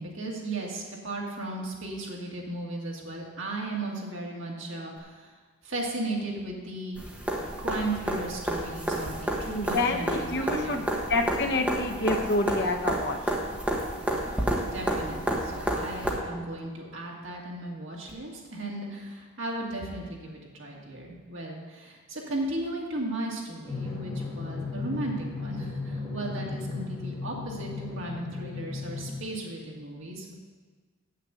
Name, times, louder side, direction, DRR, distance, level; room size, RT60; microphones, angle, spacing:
voice 1, 0.0-5.3 5.6-7.0 7.6-10.9 14.7-30.3, right 2 dB, 60° right, -2 dB, 2.1 m, -36 dB
sound 1, 7.0-16.1 18.1-18.2, right 1 dB, 5° right, 1.2 m, -30 dB
voice 2, 9.6-10.8 11.1-13.2, left 2 dB, 50° left, 2 dB, 1.0 m, -27 dB
Drum, 23.6-29.2, left 3 dB, 15° left, 1.9 m, -35 dB
7.7 x 6.6 x 7.9 m, 1.5 s
head